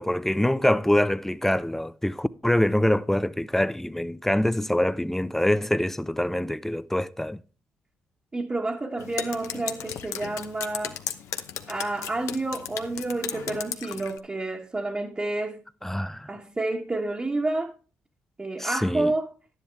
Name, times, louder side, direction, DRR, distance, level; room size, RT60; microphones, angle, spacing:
voice 1, 0.0-7.4 15.8-16.3 18.6-19.1, left 1 dB, 5° left, 0.5 m, -25 dB
voice 2, 8.3-11.0 11.7-15.6 16.3-17.7 18.4-19.3, right 2 dB, 25° right, 1.3 m, -29 dB
Drip, 9.0-14.2, left 9 dB, 80° left, 0.9 m, -36 dB
11.0 x 10.0 x 3.5 m
supercardioid pair, 70°, 5 cm